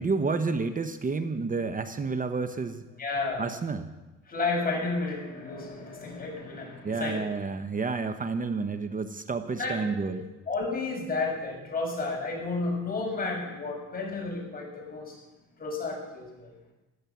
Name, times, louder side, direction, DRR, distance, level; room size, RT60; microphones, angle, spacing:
voice 1, 0.0-2.8 3.4-3.9 6.8-10.2, right 4 dB, 25° right, 9 dB, 0.9 m, -30 dB
voice 2, 3.0-3.5 4.3-7.3 9.6-10.2 10.5-15.2 15.6-16.5, left 3 dB, 25° left, -1 dB, 6.8 m, -32 dB
16.5 x 12.0 x 7.2 m, 1.1 s
cardioid pair, 110°, 32 cm